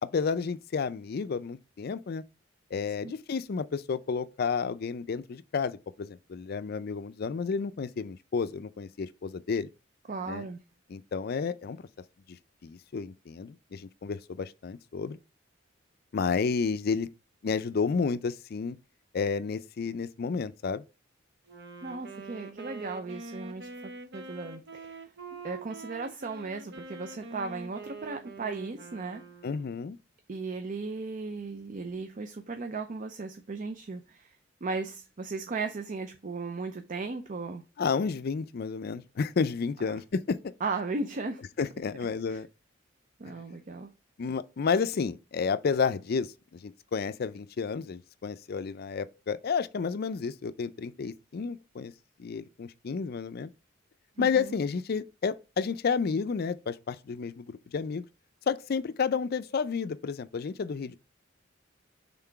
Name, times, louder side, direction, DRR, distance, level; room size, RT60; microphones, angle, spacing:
voice 1, 0.0-2.2 2.7-9.7 10.3-10.5 10.9-11.9 12.3-12.4 12.6-15.2 16.1-17.1 17.4-18.8 19.1-20.8 29.4-30.0 37.8-40.4 41.6-42.5 43.3-43.4 44.2-51.9 52.2-53.5 54.2-58.0 58.5-61.0, left 5 dB, 55° left, 0.4 m, -31 dB
voice 2, 10.1-10.6 21.8-25.1 25.4-29.2 30.3-34.4 34.6-37.6 39.9-40.0 40.6-41.5 42.3-42.4 43.2-43.9 54.2-54.5, right 3 dB, 45° right, 0.5 m, -36 dB
Wind instrument woodwind instrument, 21.5-29.8, right 3 dB, 60° right, 0.9 m, -45 dB
5.8 x 3.7 x 4.5 m
head